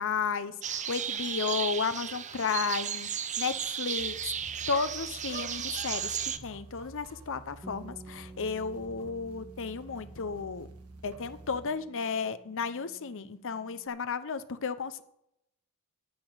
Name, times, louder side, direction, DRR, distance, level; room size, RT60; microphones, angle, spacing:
voice 1, 0.0-4.3 4.7-10.7 11.0-15.0, left 5 dB, 60° left, 12 dB, 0.7 m, -33 dB
sound 1, 0.6-6.4, right 8 dB, 35° right, 0.7 m, -34 dB
sound 2, 4.0-11.7, right 2 dB, 85° right, 1.7 m, -50 dB
Bass guitar, 7.6-13.9, right 2 dB, ahead, 1.9 m, -52 dB
10.5 x 7.9 x 8.0 m, 0.80 s
head